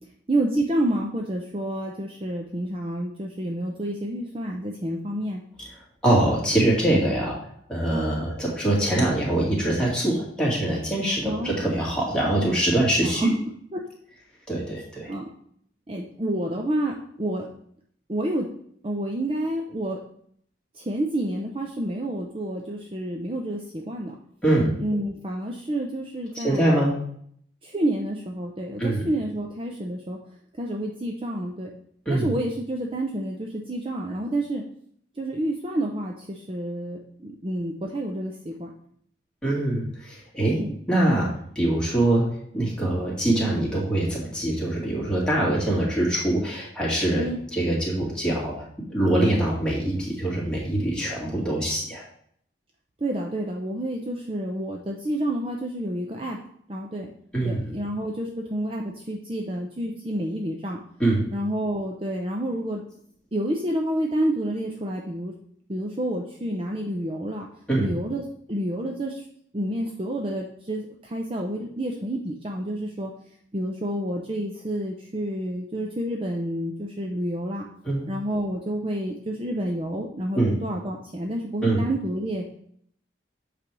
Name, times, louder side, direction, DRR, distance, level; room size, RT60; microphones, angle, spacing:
voice 1, 0.3-5.4 11.2-11.5 13.0-13.3 13.7-13.8 15.1-15.3 15.9-17.5 18.1-18.5 18.8-20.0 20.7-24.1 24.8-26.8 27.6-30.2 30.6-31.7 32.1-34.6 35.2-38.7 40.6-40.8 47.1-47.4 53.0-56.4 56.7-57.1 57.4-60.8 61.3-62.8 63.3-65.3 65.7-67.5 67.8-69.2 69.5-73.1 73.5-77.7 78.1-82.4, right 1 dB, 30° right, 0 dB, 0.6 m, -29 dB
voice 2, 6.0-7.4 7.7-13.3 14.5-15.1 24.4-24.7 26.3-26.9 28.8-29.0 32.1-32.3 39.4-40.6 40.9-42.3 42.5-48.5 48.9-52.0 57.3-57.6 61.0-61.3 67.7-67.9 77.8-78.1 80.3-80.6 81.6-81.9, right 1 dB, 5° left, -6 dB, 2.2 m, -23 dB
8.6 x 3.4 x 6.1 m, 0.65 s
head